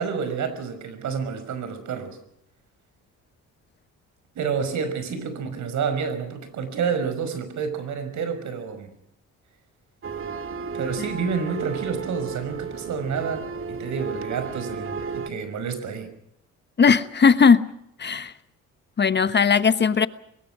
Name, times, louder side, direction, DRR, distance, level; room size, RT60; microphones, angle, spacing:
voice 1, 0.0-2.2 4.4-8.9 10.7-16.1, right 6 dB, 70° right, 5.7 m, -29 dB
sound 1, 10.0-15.3, right 5 dB, 45° right, 2.0 m, -33 dB
voice 2, 16.8-17.7 18.0-18.3 19.0-20.1, left 5 dB, 35° left, 1.2 m, -18 dB
23.5 x 21.0 x 6.2 m
cardioid pair, 90°, 30 cm